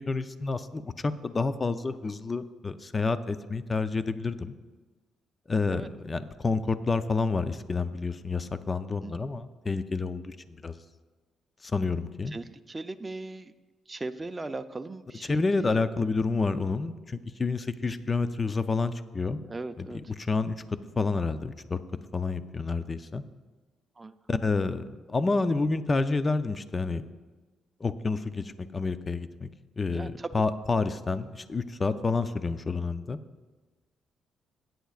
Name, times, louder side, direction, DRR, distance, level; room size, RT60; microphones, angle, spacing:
voice 1, 0.1-4.5 5.5-10.8 11.6-12.3 15.2-19.4 19.8-21.8 22.1-23.2 24.3-27.0 27.8-29.5 29.8-33.2, left 3 dB, 30° left, 11 dB, 0.6 m, -29 dB
voice 2, 12.3-13.5 13.9-15.8 19.5-20.0 24.0-24.1 29.9-30.3, right 2 dB, 20° right, 7 dB, 0.5 m, -38 dB
17.0 x 9.3 x 2.4 m, 1.3 s
cardioid pair, 90°, 0 cm